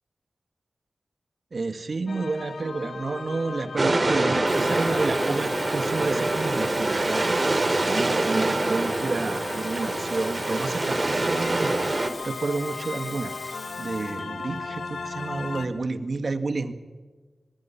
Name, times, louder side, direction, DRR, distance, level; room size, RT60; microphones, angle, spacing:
voice 1, 1.5-7.3 7.9-13.3 13.8-16.7, right 3 dB, 65° right, 10 dB, 1.8 m, -30 dB
sound 1, 2.1-15.7, left 4 dB, 85° left, 1.9 m, -37 dB
sound 2, 3.8-12.1, right 2 dB, 45° right, 2.6 m, -25 dB
Water tap faucet / Fill (with liquid), 4.3-14.2 14.6-14.9, left 2 dB, 45° left, 3.0 m, -43 dB
23.0 x 23.0 x 5.9 m, 1.4 s
cardioid pair, 45°, 0 cm